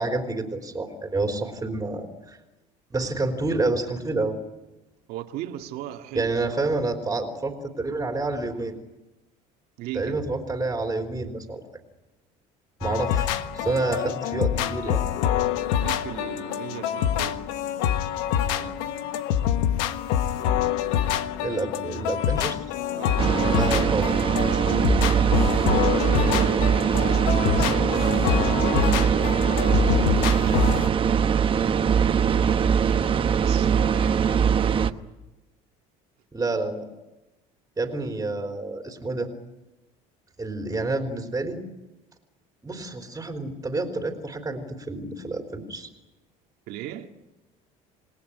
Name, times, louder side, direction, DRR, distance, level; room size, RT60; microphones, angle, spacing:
voice 1, 0.0-2.4 2.9-4.4 6.1-8.8 9.9-11.6 12.8-15.0 21.4-22.6 23.5-24.1 36.3-36.9 37.8-39.3 40.4-41.6 42.6-45.9, right 2 dB, 15° right, 3.6 m, -28 dB
voice 2, 5.1-6.6 9.8-10.3 15.7-17.5 18.4-18.9 22.9-23.4 24.8-29.4 30.1-33.0 33.3-34.5 46.7-47.1, right 12 dB, 70° right, 2.2 m, -38 dB
sound 1, 12.8-30.9, left 10 dB, 85° left, 1.4 m, -26 dB
sound 2, 23.2-34.9, right 7 dB, 30° right, 1.1 m, -21 dB
28.0 x 19.5 x 9.9 m
supercardioid pair, 110°, 16 cm